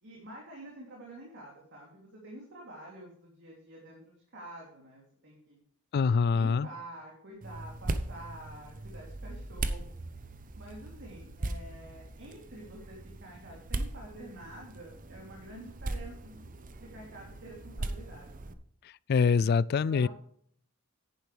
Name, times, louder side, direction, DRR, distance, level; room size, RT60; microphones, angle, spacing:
voice 1, 0.0-5.6 6.3-9.9 10.6-18.5 19.3-19.5 19.9-20.1, right 1 dB, 55° right, 3.0 m, -48 dB
voice 2, 5.9-6.7 19.1-20.1, left 5 dB, 45° left, 0.3 m, -24 dB
sound 1, 7.4-18.5, right 2 dB, 40° right, 0.8 m, -39 dB
10.5 x 10.5 x 3.4 m
head